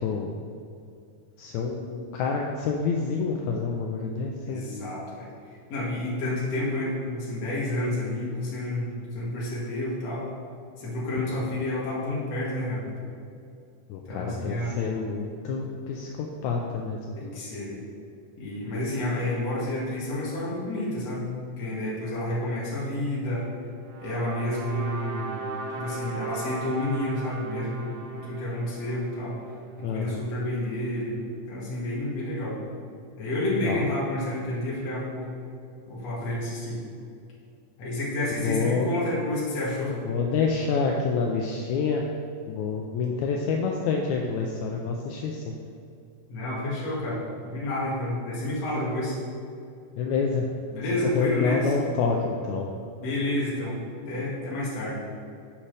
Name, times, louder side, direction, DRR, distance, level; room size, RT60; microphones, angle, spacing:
voice 1, 0.0-0.3 1.4-4.7 13.9-17.0 29.8-30.2 33.6-33.8 38.4-38.9 40.1-42.0 42.5-45.6 50.0-50.5 51.2-52.7, left 5 dB, 80° left, 1 dB, 1.8 m, -27 dB
voice 2, 4.5-5.3 5.7-8.9 9.1-10.3 10.8-12.8 14.1-14.7 17.2-17.8 18.4-23.4 24.0-25.4 25.7-29.4 29.8-31.2 31.5-32.6 33.2-35.3 35.9-36.8 37.8-39.9 46.3-49.2 50.7-51.7 53.0-53.8 54.1-55.0, left 1 dB, 55° left, -7 dB, 3.0 m, -30 dB
sound 1, 23.8-30.1, right 4 dB, 75° right, 2.0 m, -37 dB
9.9 x 5.9 x 3.3 m, 2.5 s
omnidirectional pair, 3.7 m